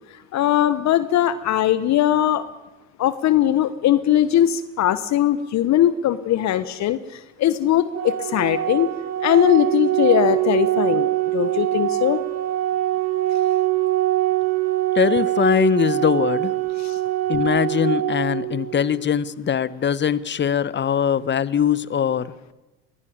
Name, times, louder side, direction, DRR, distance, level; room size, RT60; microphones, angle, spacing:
voice 1, 0.3-2.5 3.0-8.9 9.2-12.2 16.8-17.0, left 12 dB, 50° left, 14 dB, 1.1 m, -20 dB
Organ, 7.9-18.9, right 14 dB, 45° right, 4.5 m, -23 dB
voice 2, 14.9-16.5 17.3-22.3, left 8 dB, 30° left, 19 dB, 1.1 m, -21 dB
22.0 x 16.5 x 8.7 m, 1.1 s
hypercardioid pair, 70°, 35 cm